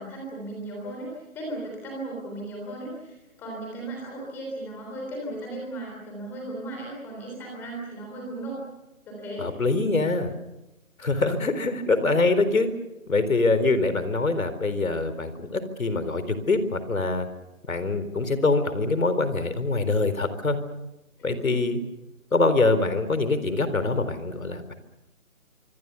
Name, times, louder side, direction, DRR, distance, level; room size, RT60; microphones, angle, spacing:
voice 1, 0.0-8.6 9.1-9.5 10.0-10.2 21.2-21.6, right 1 dB, 5° left, -1 dB, 3.5 m, -36 dB
voice 2, 9.4-10.3 11.0-12.7 13.1-17.3 17.7-20.6 21.2-21.8 22.3-24.7, left 3 dB, 75° left, 12 dB, 4.1 m, -24 dB
25.5 x 25.0 x 6.9 m, 0.96 s
hypercardioid pair, 175°, 41 cm